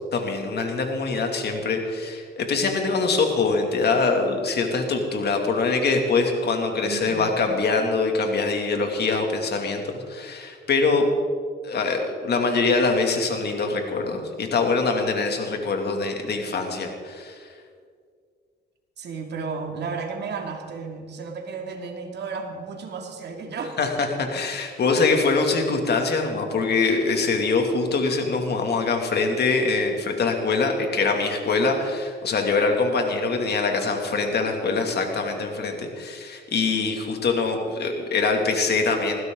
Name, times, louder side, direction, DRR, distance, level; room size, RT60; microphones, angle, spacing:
voice 1, 0.1-11.1 11.6-17.5 23.8-39.2, left 4 dB, 55° left, 3 dB, 2.6 m, -24 dB
voice 2, 6.8-7.3 19.0-23.9, right 4 dB, 60° right, 3 dB, 2.6 m, -33 dB
20.5 x 16.0 x 3.9 m, 2.1 s
cardioid pair, 90°, 20 cm